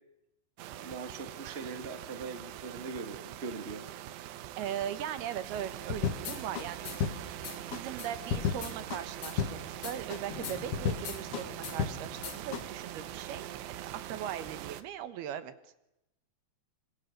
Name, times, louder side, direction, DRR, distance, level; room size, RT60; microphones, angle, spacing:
sound 1, 0.6-14.8, right 12 dB, 90° right, 3.3 m, -43 dB
voice 1, 0.7-3.8, right 4 dB, 30° right, 7 dB, 1.2 m, -41 dB
voice 2, 4.6-6.9 7.5-13.5 13.8-15.5, right 10 dB, 70° right, 12 dB, 3.2 m, -39 dB
sound 2, 5.9-12.6, left 7 dB, 70° left, 1.3 m, -34 dB
sound 3, 10.3-13.9, left 7 dB, 55° left, 1.9 m, -50 dB
27.5 x 25.0 x 6.7 m, 0.89 s
omnidirectional pair, 4.8 m